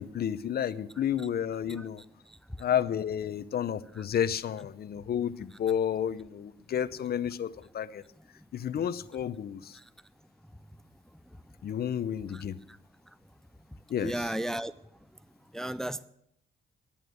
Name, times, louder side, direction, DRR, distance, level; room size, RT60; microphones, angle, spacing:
voice 1, 0.0-2.0 2.6-8.0 8.5-9.8 11.6-12.6 13.9-14.3, left 9 dB, 50° left, 13 dB, 0.7 m, -31 dB
voice 2, 14.0-14.7 15.5-16.0, right 1 dB, ahead, 17 dB, 0.4 m, -33 dB
11.0 x 8.7 x 7.9 m, 0.76 s
cardioid pair, 90°, 20 cm